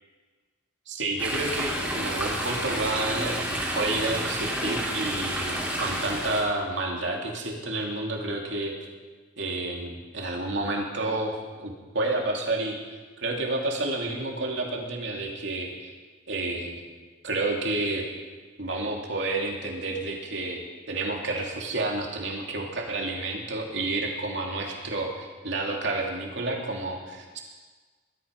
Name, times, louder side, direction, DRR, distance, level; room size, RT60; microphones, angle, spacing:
voice 1, 0.9-8.7 9.4-12.8 13.2-15.9 16.3-16.8 17.2-18.1 18.6-27.4, right 2 dB, 60° right, 0 dB, 2.9 m, -30 dB
Chatter / Stream, 1.2-6.4, right 1 dB, 5° right, 3.4 m, -30 dB
20.5 x 13.5 x 5.3 m, 1.4 s
head